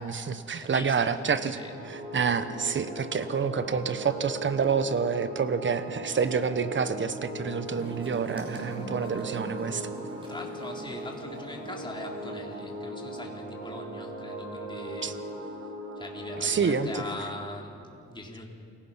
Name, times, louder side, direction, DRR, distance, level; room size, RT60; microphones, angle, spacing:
voice 1, 0.0-1.6 1.9-9.9 15.0-15.1 16.4-17.0, right 6 dB, 40° right, 12 dB, 1.3 m, -28 dB
voice 2, 0.6-1.2 1.5-1.8 10.3-15.2 16.0-18.5, left 2 dB, 15° left, 0 dB, 3.8 m, -41 dB
sound 1, 1.4-16.8, right 1 dB, 75° right, 4.8 m, -39 dB
sound 2, 7.6-12.7, right 1 dB, 15° right, 6.2 m, -44 dB
28.5 x 18.0 x 5.8 m, 2.6 s
cardioid pair, 90°, 30 cm